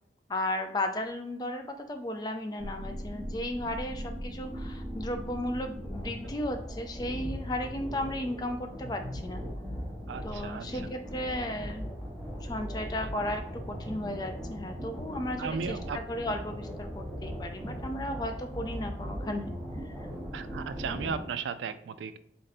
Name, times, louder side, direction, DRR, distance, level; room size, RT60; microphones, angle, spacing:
voice 1, 0.3-9.4 10.2-11.9 12.4-19.4 19.8-20.1, left 1 dB, 20° left, 5 dB, 0.3 m, -35 dB
sound 1, 2.6-21.3, equal, ahead, 0.9 m, -39 dB
voice 2, 10.1-10.8 15.4-16.0 20.3-22.2, right 6 dB, 80° right, 13 dB, 0.3 m, -35 dB
4.3 x 2.6 x 4.0 m, 0.66 s
head